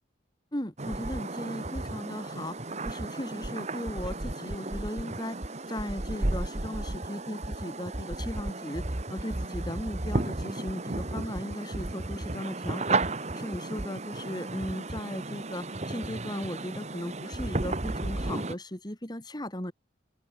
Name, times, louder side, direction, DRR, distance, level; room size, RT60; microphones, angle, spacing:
voice 1, 0.5-2.6 2.8-5.4 5.7-8.8 9.1-19.7, left 1 dB, 20° left, 2.6 m, -37 dB
sound 1, 0.8-18.5, right 2 dB, 35° right, 1.5 m, -33 dB
open air
head